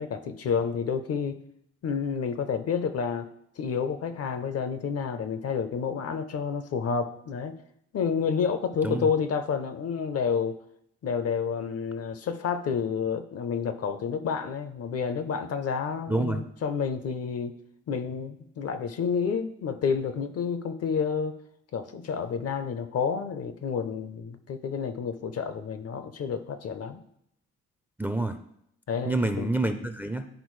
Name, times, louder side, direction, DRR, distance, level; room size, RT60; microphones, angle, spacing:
voice 1, 0.0-1.4 1.8-3.3 3.6-7.5 7.9-10.5 11.0-17.6 17.9-21.3 21.7-27.0 28.9-29.5, left 6 dB, 55° left, 10 dB, 0.7 m, -29 dB
voice 2, 16.1-16.4 28.0-28.4 29.0-30.3, right 2 dB, 5° right, 7 dB, 0.4 m, -27 dB
10.5 x 3.8 x 3.2 m, 0.73 s
cardioid pair, 90°, 30 cm